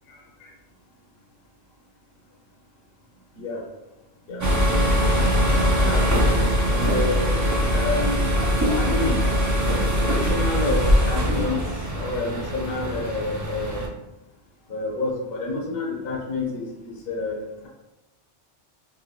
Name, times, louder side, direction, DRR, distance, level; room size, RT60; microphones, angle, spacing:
voice 1, 4.3-4.8 5.1-8.2 8.8-9.2 10.0-11.6 11.9-13.9 14.7-17.7, left 2 dB, 60° left, -2 dB, 1.0 m, -29 dB
sound 1, 4.4-13.9, equal, 30° right, 0.3 m, -22 dB
3.6 x 2.2 x 3.1 m, 0.93 s
omnidirectional pair, 1.2 m